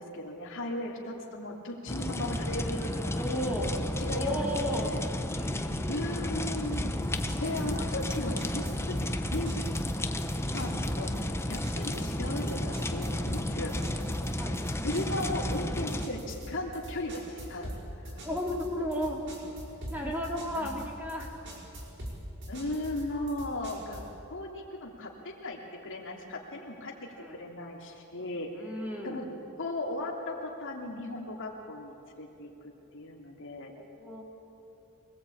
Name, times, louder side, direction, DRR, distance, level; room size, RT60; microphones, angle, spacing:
voice 1, 0.0-3.2 4.0-4.3 4.6-5.0 5.9-6.9 7.4-9.7 10.5-13.7 14.8-17.7 18.1-18.4 20.5-20.8 22.5-24.0 24.3-28.7 29.0-29.3 29.6-33.7, left 1 dB, 60° left, 0 dB, 3.1 m, -37 dB
sound 1, 1.9-16.1, left 1 dB, 10° left, 1.0 m, -32 dB
voice 2, 3.2-3.8 4.1-4.9 5.3-6.0 14.4-14.6 18.2-19.2 19.9-21.3 27.2-27.4 28.6-29.2 33.8-34.2, equal, 10° right, -2 dB, 3.7 m, -34 dB
sound 2, 6.7-24.2, equal, 55° right, 5.2 m, -42 dB
25.0 x 20.0 x 8.7 m, 2.9 s
head